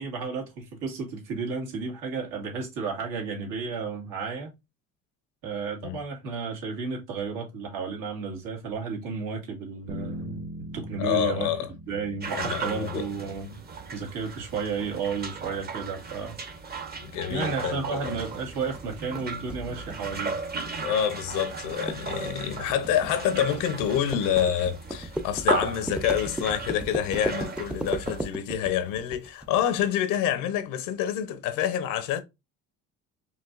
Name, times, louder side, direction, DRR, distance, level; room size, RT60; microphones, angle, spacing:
voice 1, 0.0-4.5 5.4-10.5 10.7-11.5 11.9-13.6 13.9-16.4 17.3-20.4, right 5 dB, 75° right, 2.1 m, -32 dB
sound 1, 9.9-14.2, equal, 50° right, 1.3 m, -41 dB
voice 2, 11.0-11.7 12.3-13.1 17.0-18.0 20.8-32.2, left 9 dB, 85° left, 0.9 m, -27 dB
sound 2, 12.2-28.3, right 4 dB, 30° right, 0.9 m, -36 dB
sound 3, 18.0-29.6, right 1 dB, 5° right, 0.5 m, -35 dB
5.0 x 2.9 x 2.5 m
cardioid pair, 110°, 32 cm